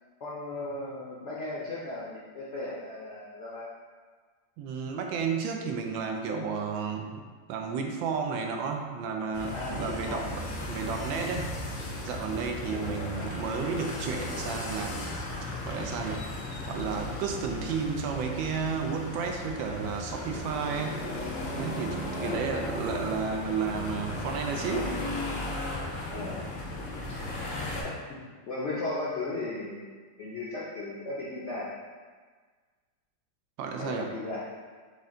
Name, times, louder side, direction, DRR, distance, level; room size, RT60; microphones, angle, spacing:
voice 1, 0.2-3.7 9.5-10.3 12.6-13.3 21.5-21.7 22.1-22.7 24.5-25.0 26.1-26.5 27.1-27.2 27.7-27.9 28.5-29.9 30.2-31.7 33.8-34.5, left 2 dB, 65° left, -7 dB, 0.7 m, -36 dB
voice 2, 4.6-7.2 7.5-11.5 12.0-15.1 15.7-16.2 16.7-21.0 21.6-24.9 33.6-34.1, right 5 dB, 85° right, 3 dB, 1.3 m, -32 dB
sound 1, 9.3-27.8, left 1 dB, 80° left, 1.5 m, -36 dB
5.5 x 2.5 x 3.7 m, 1.5 s
omnidirectional pair, 2.0 m